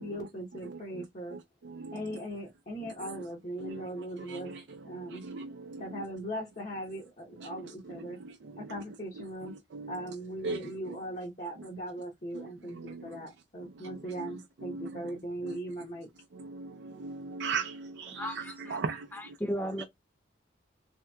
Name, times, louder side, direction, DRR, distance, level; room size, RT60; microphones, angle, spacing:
voice 1, 0.0-1.4 1.9-4.6 4.8-5.2 5.8-8.2 8.6-9.5 9.9-16.1, right 1 dB, 40° left, 0.8 m, -39 dB
voice 2, 0.6-1.0 1.6-2.2 2.8-3.2 3.6-3.9 4.2-6.0 7.4-7.6 8.2-8.3 8.6-8.8 9.2-9.3 9.7-10.1 10.4-11.0 12.3-12.5 12.8-13.0 13.8-15.1 15.4-15.6 16.4-19.0 19.8-19.9, right 4 dB, 70° right, 0.4 m, -39 dB
voice 3, 18.1-18.8 19.1-19.8, equal, 10° left, 0.4 m, -35 dB
3.2 x 2.8 x 2.2 m
head